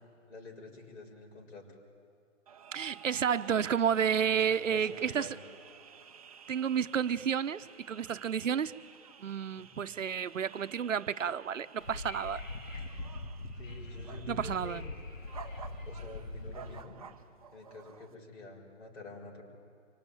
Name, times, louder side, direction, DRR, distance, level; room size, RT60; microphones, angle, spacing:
voice 1, 0.3-1.6 4.5-5.4 13.6-14.9 15.8-17.0 17.5-19.4, left 3 dB, 65° left, 1 dB, 7.0 m, -48 dB
sound 1, 2.5-18.1, right 7 dB, 30° right, 0.7 m, -53 dB
voice 2, 2.7-5.4 6.5-8.7 9.2-12.4 14.3-14.9, right 8 dB, 75° right, 13 dB, 1.0 m, -31 dB
Wind / Subway metro underground, 11.8-16.8, left 2 dB, 80° left, 2.4 m, -42 dB
25.5 x 24.5 x 9.2 m, 2.3 s
hypercardioid pair, 165°, 39 cm